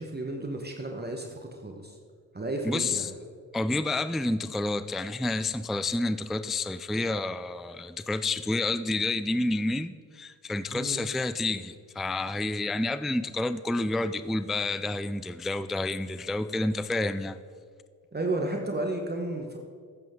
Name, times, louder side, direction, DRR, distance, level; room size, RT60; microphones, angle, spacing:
voice 1, 0.0-2.0 2.3-3.1 10.7-11.0 18.1-19.6, right 2 dB, 25° right, 3 dB, 1.2 m, -33 dB
voice 2, 2.6-3.1 3.5-17.4, left 2 dB, ahead, 13 dB, 0.3 m, -29 dB
13.0 x 9.2 x 3.7 m, 2.2 s
supercardioid pair, 50°, 38 cm